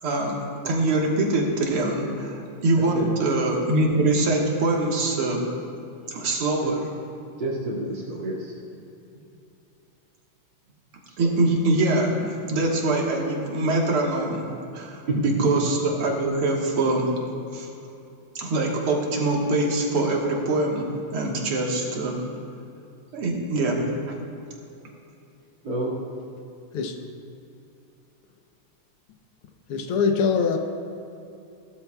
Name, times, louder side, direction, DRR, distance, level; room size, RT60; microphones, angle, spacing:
voice 1, 0.0-5.5 6.1-6.8 11.2-17.1 17.5-17.7 18.4-22.2 23.1-24.2, right 2 dB, 80° right, -1 dB, 2.5 m, -24 dB
voice 2, 7.4-8.6 11.2-11.3 15.1-15.6 25.6-26.0, right 1 dB, 55° right, -5 dB, 2.8 m, -28 dB
voice 3, 29.7-30.6, left 5 dB, 90° left, 4 dB, 1.9 m, -22 dB
18.0 x 13.0 x 2.4 m, 2.7 s
omnidirectional pair, 2.4 m